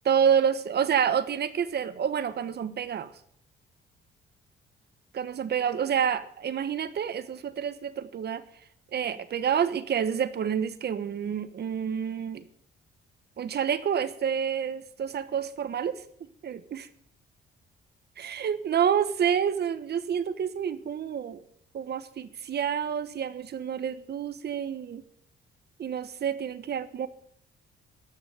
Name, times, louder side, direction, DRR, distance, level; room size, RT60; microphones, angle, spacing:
voice 1, 0.0-3.1 5.1-8.4 8.9-12.4 13.4-16.0 16.4-16.9 18.2-21.4 21.7-25.0 25.8-27.1, right 8 dB, 55° right, 13 dB, 1.2 m, -28 dB
14.0 x 6.2 x 10.0 m, 0.68 s
cardioid pair, 90°, 20 cm